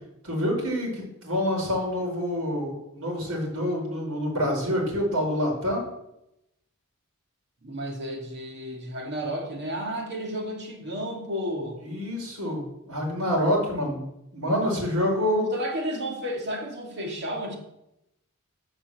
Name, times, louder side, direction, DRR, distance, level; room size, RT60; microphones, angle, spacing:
voice 1, 0.2-5.8 11.8-14.0 14.3-15.5, equal, 80° right, 0 dB, 5.0 m, -27 dB
voice 2, 7.6-11.8 15.5-17.6, equal, 50° right, 1 dB, 2.5 m, -32 dB
12.0 x 6.2 x 7.8 m, 0.85 s
head